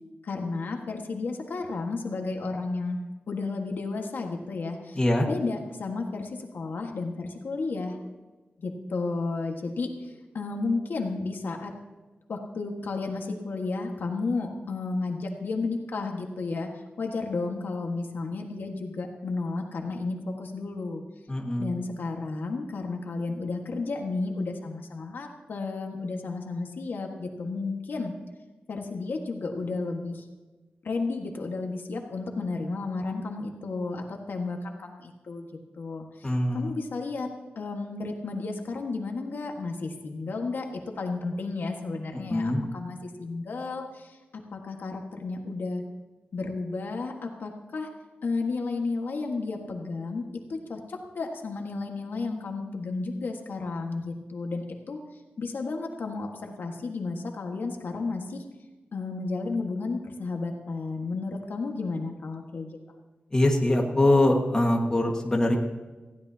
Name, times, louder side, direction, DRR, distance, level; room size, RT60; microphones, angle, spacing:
voice 1, 0.2-3.0 3.3-8.0 8.6-11.7 12.3-16.7 17.0-21.0 21.6-28.1 28.7-30.3 30.8-35.5 35.8-37.3 37.5-40.7 41.0-44.2 44.5-45.8 46.3-47.9 48.2-50.2 50.5-55.0 55.4-58.4 58.9-62.7, left 3 dB, 65° left, 2 dB, 1.6 m, -32 dB
voice 2, 4.9-5.2 21.3-21.7 36.2-36.7 42.3-42.6 63.3-65.6, left 1 dB, 20° left, 0 dB, 1.7 m, -23 dB
20.5 x 15.0 x 2.8 m, 1.2 s
wide cardioid pair, 165°, 4 cm